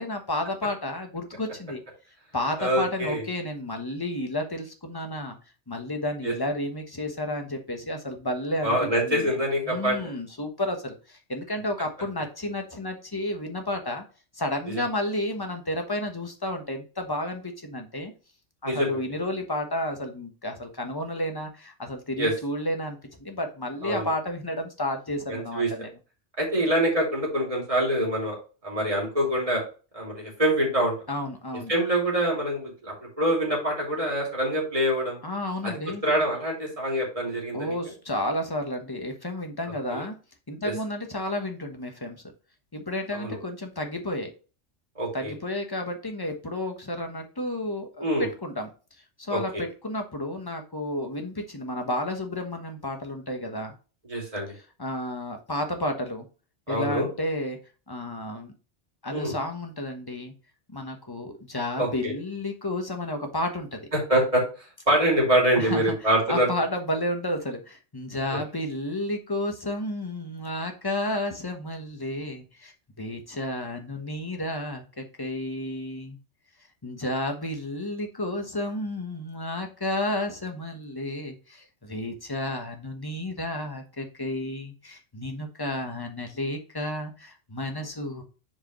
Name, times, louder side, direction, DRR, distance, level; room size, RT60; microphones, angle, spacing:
voice 1, 0.0-1.8 2.3-5.4 5.7-8.8 9.0-9.4 9.7-14.0 14.3-18.1 18.6-25.9 31.1-31.7 35.2-36.0 37.5-40.1 40.5-42.2 42.7-44.3 45.1-48.7 49.2-53.7 54.8-56.3 56.7-57.6 57.9-58.5 59.0-60.3 60.7-63.8 65.6-65.9 66.3-72.7 73.0-76.2 76.8-88.2, left 1 dB, 20° left, 4 dB, 1.2 m, -31 dB
voice 2, 2.6-3.2 6.2-6.3 8.6-10.1 14.7-14.8 18.6-18.9 22.2-22.3 23.8-24.1 25.3-25.7 26.4-28.4 28.6-29.6 29.9-30.9 31.7-35.2 35.6-35.7 36.0-37.7 39.9-40.0 40.6-40.7 43.1-43.4 45.0-45.3 48.0-48.3 49.3-49.6 54.0-54.5 56.7-57.1 59.1-59.3 61.8-62.1 63.9-64.4 64.9-66.5 68.3-68.4, right 1 dB, 30° right, -2 dB, 2.8 m, -25 dB
7.4 x 4.9 x 3.1 m, 0.35 s
omnidirectional pair, 1.2 m